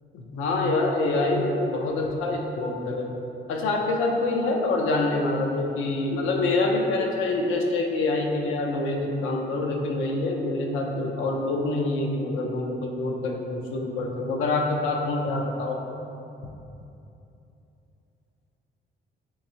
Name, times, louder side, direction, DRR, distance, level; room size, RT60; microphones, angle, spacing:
voice 1, 0.1-3.1 3.5-16.0, left 2 dB, 85° left, 1 dB, 0.4 m, -26 dB
3.4 x 3.0 x 2.7 m, 2.8 s
cardioid pair, 90°, 20 cm